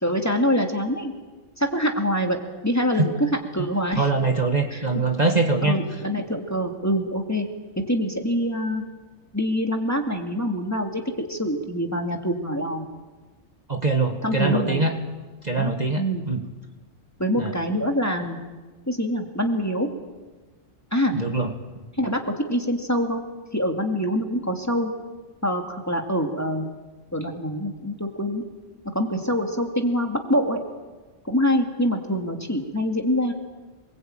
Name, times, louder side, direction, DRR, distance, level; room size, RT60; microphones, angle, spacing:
voice 1, 0.0-1.1 1.6-4.1 4.7-4.9 5.6-7.5 7.8-8.8 9.3-12.9 14.2-14.9 15.5-16.2 17.2-18.4 18.9-19.9 20.9-21.1 22.0-23.2 23.5-24.9 25.4-26.7 27.1-28.4 28.9-30.6 31.2-33.3, equal, 10° left, 3 dB, 2.5 m, -25 dB
voice 2, 4.0-5.8 13.7-14.9 15.4-16.4 17.4-17.5 21.1-21.5, right 3 dB, 30° right, 3 dB, 1.9 m, -23 dB
27.5 x 21.5 x 9.0 m, 1.3 s
omnidirectional pair, 1.4 m